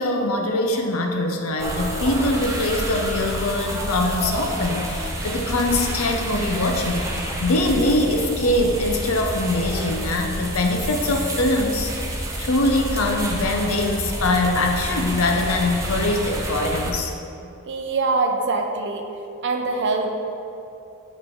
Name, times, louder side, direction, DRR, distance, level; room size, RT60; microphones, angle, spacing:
voice 1, 0.0-11.9 12.4-17.1, left 2 dB, 70° left, 3 dB, 0.7 m, -23 dB
sound 1, 1.6-16.9, right 1 dB, 15° right, 0.6 m, -29 dB
voice 2, 17.6-19.0 19.4-20.1, right 3 dB, 55° right, 3 dB, 0.6 m, -23 dB
7.5 x 3.3 x 4.5 m, 2.8 s
head